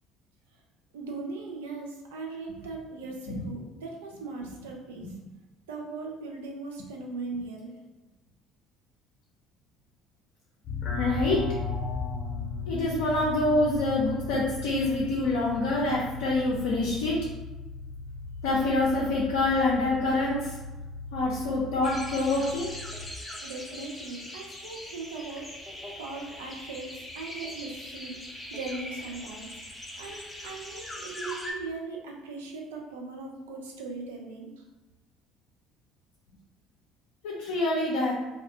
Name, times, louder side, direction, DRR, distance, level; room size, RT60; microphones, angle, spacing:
voice 1, 0.9-5.1 5.7-7.7 23.4-25.5 26.0-28.2 28.5-29.6 30.0-34.6, right 3 dB, 75° right, 0 dB, 0.4 m, -39 dB
sound 1, 10.6-23.1, left 4 dB, 45° left, 0.7 m, -37 dB
voice 2, 11.0-11.4 12.7-17.2 18.4-20.5 21.1-22.7 37.2-38.1, left 2 dB, 70° left, -5 dB, 0.4 m, -26 dB
sound 2, 21.8-31.5, left 1 dB, 10° left, 0.5 m, -41 dB
2.3 x 2.2 x 2.7 m, 1.1 s
figure-of-eight pair, 60°, 0 cm